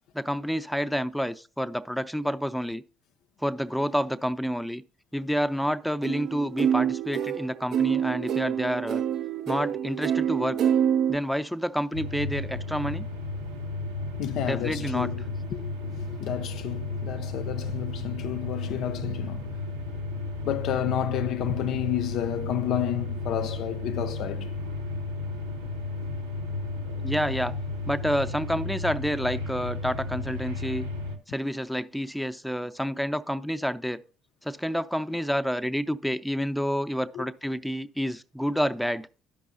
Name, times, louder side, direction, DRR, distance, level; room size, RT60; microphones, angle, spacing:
voice 1, 0.1-2.8 3.4-4.8 5.1-9.0 9.5-10.6 11.1-13.1 14.5-15.1 27.0-27.6 27.8-30.9 31.3-34.0 34.4-39.1, equal, ahead, 0.5 m, -29 dB
sound 1, 6.0-11.2, right 9 dB, 55° right, 0.3 m, -26 dB
sound 2, 11.9-31.2, left 2 dB, 90° right, 0.8 m, -33 dB
voice 2, 14.2-15.2 15.5-19.5 20.4-24.5 37.1-37.3, left 10 dB, 60° left, 0.3 m, -31 dB
12.0 x 5.3 x 2.5 m
hypercardioid pair, 55°, 0 cm